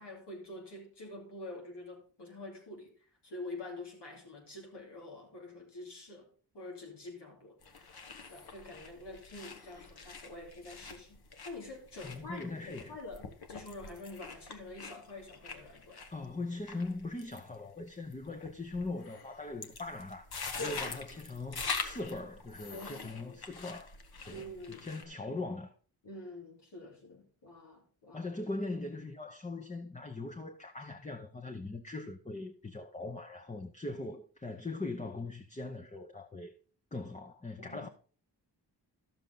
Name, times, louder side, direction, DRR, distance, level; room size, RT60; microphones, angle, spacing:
voice 1, 0.0-2.9 3.2-8.0 8.3-16.0 20.6-21.0 22.7-23.4 24.3-24.9 26.0-28.2 37.6-37.9, left 2 dB, 85° left, 2.8 m, -46 dB
sound 1, 7.6-25.0, left 4 dB, 65° left, 1.2 m, -44 dB
voice 2, 12.0-13.0 16.1-20.3 20.6-24.0 24.3-25.7 28.1-36.5 36.9-37.9, left 2 dB, 20° left, 0.8 m, -40 dB
12.0 x 6.9 x 3.8 m
cardioid pair, 70°, 41 cm